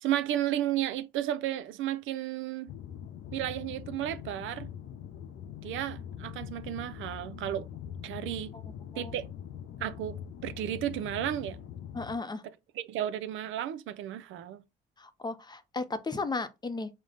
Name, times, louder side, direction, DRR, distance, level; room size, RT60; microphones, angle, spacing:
voice 1, 0.0-2.7 3.3-4.7 5.6-7.7 8.0-8.5 9.0-9.3 9.8-11.6 12.7-14.6, right 12 dB, 80° right, 0.5 m, -33 dB
sound 1, 2.7-12.2, left 9 dB, 80° left, 0.5 m, -43 dB
voice 2, 11.9-12.4 15.0-16.9, left 3 dB, 20° left, 0.6 m, -35 dB
4.9 x 2.1 x 3.7 m
cardioid pair, 90°, 20 cm